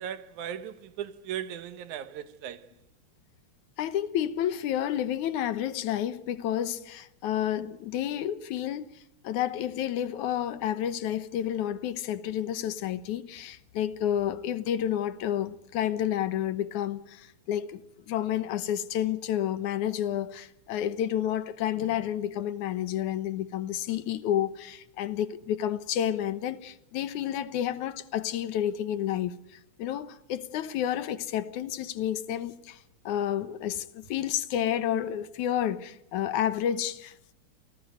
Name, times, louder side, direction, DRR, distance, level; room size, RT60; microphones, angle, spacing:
voice 1, 0.0-2.6, right 9 dB, 75° right, 2.5 m, -37 dB
voice 2, 3.8-17.8 18.1-32.8 33.1-37.3, left 10 dB, 75° left, 2.5 m, -30 dB
28.5 x 19.0 x 9.3 m
omnidirectional pair, 3.5 m